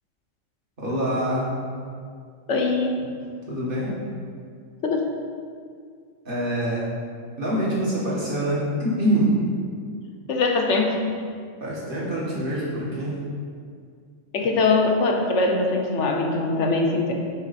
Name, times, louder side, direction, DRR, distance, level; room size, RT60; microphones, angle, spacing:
voice 1, 0.8-1.5 3.5-4.0 6.3-6.9 7.4-9.3 11.6-13.2, right 1 dB, 40° right, -6 dB, 1.8 m, -25 dB
voice 2, 2.5-3.0 4.8-5.1 10.3-11.0 14.3-17.1, left 3 dB, 65° left, 2 dB, 1.1 m, -22 dB
9.1 x 4.0 x 4.2 m, 2.1 s
omnidirectional pair, 1.4 m